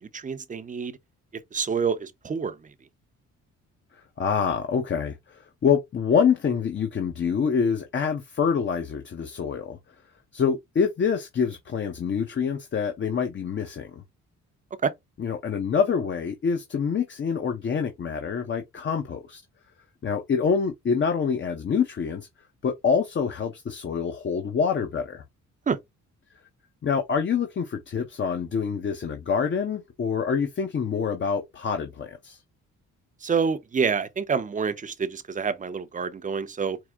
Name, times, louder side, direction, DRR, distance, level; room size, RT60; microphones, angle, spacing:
voice 1, 0.1-1.0 1.5-2.6 14.8-14.9 25.7-25.8 33.2-36.8, right 6 dB, 25° right, 0.6 m, -27 dB
voice 2, 4.2-9.8 10.3-14.0 15.2-19.4 20.0-22.3 22.6-25.2 26.8-32.4, left 6 dB, 40° left, 0.8 m, -26 dB
4.7 x 2.1 x 3.5 m
cardioid pair, 90°, 30 cm